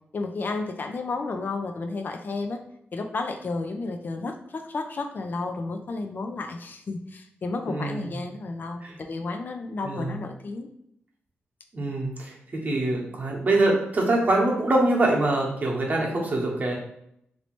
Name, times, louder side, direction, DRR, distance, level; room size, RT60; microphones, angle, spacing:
voice 1, 0.1-2.6 2.9-10.7, left 3 dB, 50° left, 5 dB, 0.4 m, -32 dB
voice 2, 7.7-8.1 8.8-9.0 9.8-10.2 11.7-16.8, right 2 dB, 45° right, -2 dB, 0.9 m, -24 dB
3.1 x 2.7 x 3.0 m, 0.74 s
cardioid pair, 90°, 4 cm